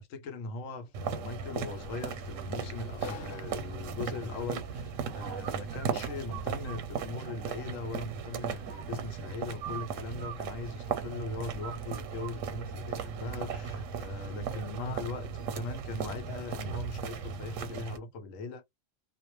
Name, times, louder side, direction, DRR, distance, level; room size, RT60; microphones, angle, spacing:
voice 1, 0.0-18.7, left 3 dB, 90° left, 1.0 m, -40 dB
Sliding door, 0.7-13.3, left 7 dB, 60° left, 0.7 m, -55 dB
sound 1, 0.9-18.0, right 6 dB, 85° right, 1.0 m, -37 dB
2.3 x 2.0 x 2.9 m
omnidirectional pair, 1.3 m